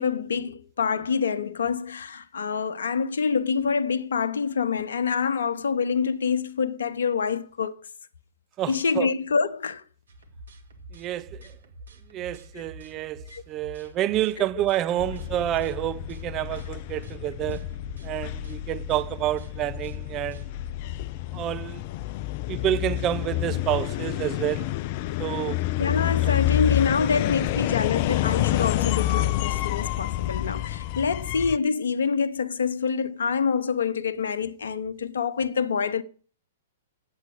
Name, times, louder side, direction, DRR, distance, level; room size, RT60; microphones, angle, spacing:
voice 1, 0.0-7.8 8.7-9.8 12.5-12.6 13.3-13.4 14.4-14.5 25.8-36.0, left 5 dB, 70° left, 0.8 m, -26 dB
voice 2, 8.6-9.1 10.9-11.5 12.1-17.7 18.0-20.4 21.3-21.8 22.5-24.8 25.2-25.6 26.2-26.4, right 13 dB, 30° right, 0.6 m, -29 dB
sound 1, 10.1-20.7, right 1 dB, 70° right, 1.9 m, -47 dB
sound 2, 15.0-31.6, left 15 dB, 45° left, 0.4 m, -28 dB
9.3 x 8.0 x 6.2 m
figure-of-eight pair, 110°, 0 cm